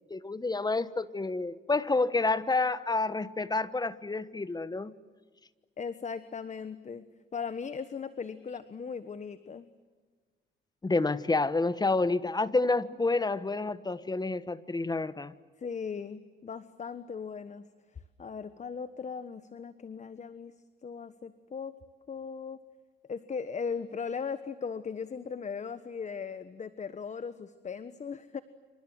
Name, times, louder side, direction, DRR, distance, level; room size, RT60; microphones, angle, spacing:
voice 1, 0.1-4.9 10.8-15.3, left 3 dB, 20° left, 1.3 m, -29 dB
voice 2, 5.8-7.0 7.3-9.7 15.6-17.7 18.2-20.5 20.8-21.7 22.1-22.6 23.1-28.4, left 6 dB, 35° left, 1.3 m, -38 dB
28.0 x 26.5 x 7.8 m
cardioid pair, 90°, 20 cm